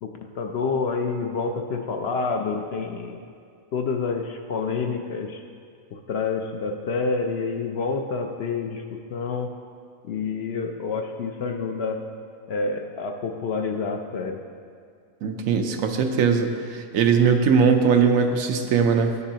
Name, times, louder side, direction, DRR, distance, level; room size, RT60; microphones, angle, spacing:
voice 1, 0.0-3.2 3.7-5.4 5.9-9.5 10.0-12.0 12.5-14.4, left 4 dB, 65° left, 3 dB, 0.7 m, -28 dB
voice 2, 15.2-19.2, right 6 dB, 85° right, 5 dB, 1.1 m, -20 dB
12.5 x 6.8 x 2.8 m, 2.2 s
omnidirectional pair, 1.4 m